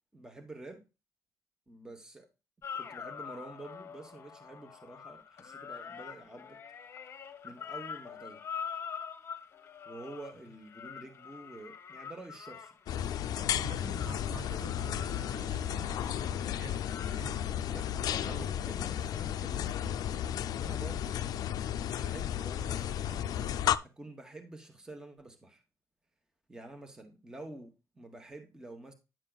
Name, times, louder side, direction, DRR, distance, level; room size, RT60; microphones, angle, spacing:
voice 1, 0.1-0.9 1.7-2.3 2.7-6.6 7.4-8.4 9.9-12.8 17.7-19.8 20.3-21.2 21.9-23.3 23.8-25.6 26.5-28.9, right 2 dB, 10° right, 1.0 m, -48 dB
sound 1, 2.6-18.2 19.7-19.8, left 7 dB, 40° left, 0.8 m, -45 dB
sound 2, 12.9-23.8, left 10 dB, 85° left, 0.4 m, -33 dB
voice 2, 13.4-17.4 18.1-18.5, right 3 dB, 80° right, 4.2 m, -47 dB
10.0 x 7.3 x 2.3 m
wide cardioid pair, 170°, 6 cm